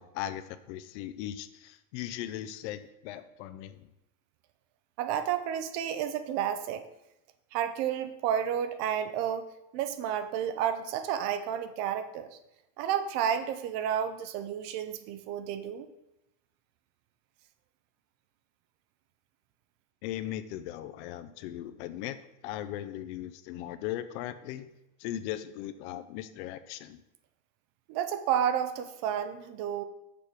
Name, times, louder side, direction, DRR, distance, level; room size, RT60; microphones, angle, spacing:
voice 1, 0.0-3.9 20.0-22.2 22.4-24.7 25.0-27.0, left 12 dB, 55° left, 12 dB, 0.5 m, -38 dB
voice 2, 5.0-6.8 7.5-12.4 12.8-15.9 27.9-29.8, right 9 dB, 40° right, 10 dB, 0.5 m, -31 dB
6.9 x 4.6 x 5.0 m, 0.89 s
supercardioid pair, 140°, 43 cm